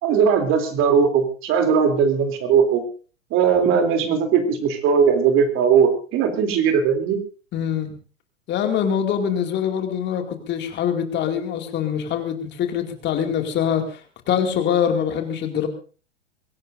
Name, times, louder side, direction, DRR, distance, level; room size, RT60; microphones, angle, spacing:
voice 1, 0.0-2.8 3.3-7.2, right 6 dB, 35° right, 5 dB, 3.1 m, -19 dB
voice 2, 7.5-7.9 8.5-14.0 14.3-15.7, left 8 dB, 30° left, 5 dB, 2.4 m, -24 dB
23.5 x 17.0 x 2.6 m, 0.37 s
figure-of-eight pair, 105°, 37 cm